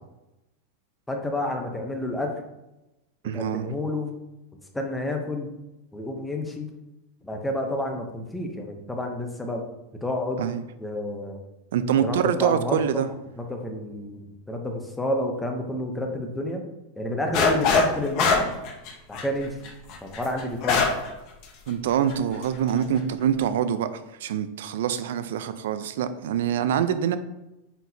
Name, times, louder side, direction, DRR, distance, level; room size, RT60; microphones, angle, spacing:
voice 1, 1.1-2.3 3.3-4.1 4.7-5.5 5.9-6.7 7.2-9.7 10.0-10.5 10.8-11.4 12.0-13.0 13.4-16.6 17.0-18.5 19.1-19.6 20.0-20.9, left 1 dB, 5° left, 2 dB, 0.7 m, -29 dB
voice 2, 3.2-3.7 10.4-10.6 11.7-13.1 21.7-27.2, right 9 dB, 75° right, 12 dB, 0.5 m, -25 dB
sound 1, 17.3-17.9 18.2-21.1 21.4-21.5 22.1-22.4, left 5 dB, 40° left, 1.0 m, -22 dB
7.9 x 4.6 x 2.8 m, 0.96 s
supercardioid pair, 165°, 0 cm